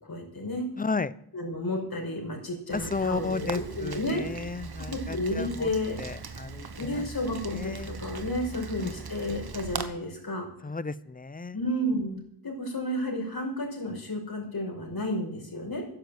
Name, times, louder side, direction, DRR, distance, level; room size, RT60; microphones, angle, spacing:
voice 1, 0.0-0.7 1.3-4.2 4.9-6.0 6.8-10.5 11.5-15.8, left 1 dB, 50° left, 1 dB, 5.7 m, -32 dB
voice 2, 0.8-1.1 2.7-5.7 6.0-7.1 7.5-7.9 8.5-8.9 10.6-11.6, left 3 dB, 20° left, 17 dB, 0.7 m, -33 dB
Rain, 2.7-9.9, right 4 dB, 50° right, 1.4 m, -40 dB
11.5 x 10.5 x 7.9 m, 0.70 s
cardioid pair, 50°, 47 cm